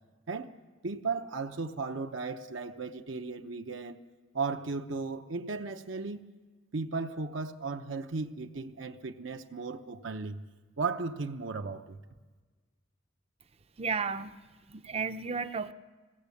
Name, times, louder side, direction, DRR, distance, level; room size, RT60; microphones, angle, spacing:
voice 1, 0.8-4.0 4.3-6.3 6.7-10.4 10.8-12.0, right 4 dB, 70° right, 0.8 m, -35 dB
voice 2, 13.8-14.4 14.7-15.7, right 5 dB, 30° right, 0.6 m, -33 dB
20.5 x 17.0 x 8.4 m
head